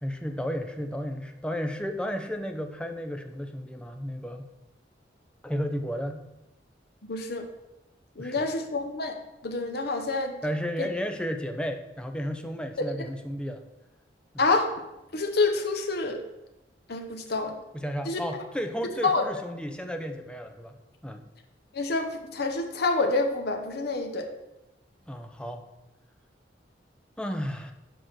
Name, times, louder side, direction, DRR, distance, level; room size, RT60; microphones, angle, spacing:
voice 1, 0.0-4.5 5.4-6.2 8.2-8.5 10.4-13.6 17.7-20.7 21.0-21.2 25.1-25.6 27.2-27.7, equal, 5° left, 5 dB, 0.5 m, -33 dB
voice 2, 7.0-7.5 8.2-9.1 9.4-10.3 10.8-10.9 12.8-12.9 14.4-14.7 15.1-16.2 16.9-17.5 18.1-18.2 19.0-19.2 21.7-24.3, left 3 dB, 60° left, 5 dB, 0.8 m, -27 dB
6.2 x 4.7 x 6.4 m, 0.95 s
head